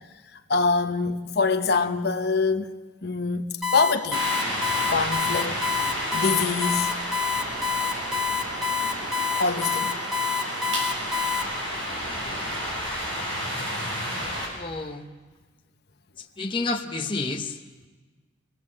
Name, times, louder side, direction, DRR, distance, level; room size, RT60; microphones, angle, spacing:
voice 1, 0.5-2.7 3.0-3.5 3.7-4.3 4.9-7.0 9.4-10.0, left 4 dB, 55° left, 1.0 m, -25 dB
Alarm, 3.6-11.4, left 4 dB, ahead, 1.4 m, -27 dB
sound 1, 4.1-14.5, equal, 70° right, 7.1 m, -31 dB
voice 2, 14.5-15.1 16.4-17.6, left 3 dB, 25° left, 0.9 m, -29 dB
25.5 x 17.5 x 7.5 m
head